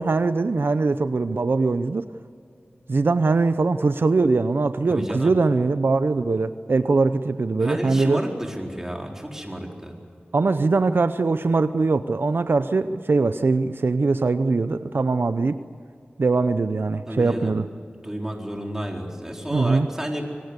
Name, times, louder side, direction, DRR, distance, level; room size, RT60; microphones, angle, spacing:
voice 1, 0.0-2.1 2.9-8.2 10.3-15.6 16.2-17.6 19.5-19.9, right 3 dB, 70° right, 11 dB, 0.7 m, -21 dB
voice 2, 4.9-5.3 7.6-9.9 17.1-17.6 18.0-20.2, equal, 10° right, 1 dB, 4.2 m, -31 dB
25.0 x 19.0 x 8.2 m, 2.4 s
wide cardioid pair, 60°, 4 cm